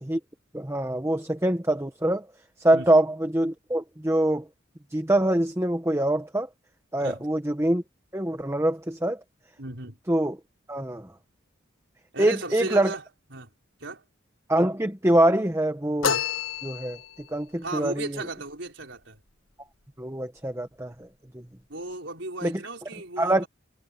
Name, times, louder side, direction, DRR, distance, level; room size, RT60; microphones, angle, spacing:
voice 1, 0.5-2.3 2.6-4.4 4.9-6.5 6.9-7.8 8.1-9.2 10.1-10.4 10.7-11.1 12.2-12.9 14.5-16.2 16.6-17.0 17.3-18.2 20.0-21.1 21.3-21.4 22.4-22.6 23.2-23.5, right 1 dB, 15° right, 1.1 m, -24 dB
voice 2, 9.6-10.0 12.1-13.0 13.3-13.5 13.8-14.0 17.6-19.2 21.7-23.5, right 2 dB, 65° right, 4.7 m, -35 dB
sound 1, 16.0-17.3, left 7 dB, 85° left, 1.4 m, -28 dB
head